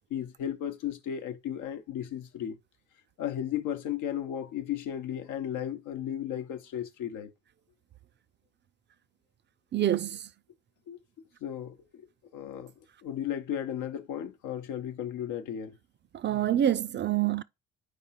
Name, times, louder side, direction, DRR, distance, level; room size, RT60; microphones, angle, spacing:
voice 1, 0.1-2.6 3.2-7.3 10.9-11.0 11.4-12.1 12.3-12.7 13.0-15.7, left 10 dB, 90° left, 0.9 m, -35 dB
voice 2, 9.7-10.2 16.2-17.4, right 11 dB, 40° right, 0.4 m, -26 dB
4.7 x 3.6 x 5.6 m
cardioid pair, 90°, 30 cm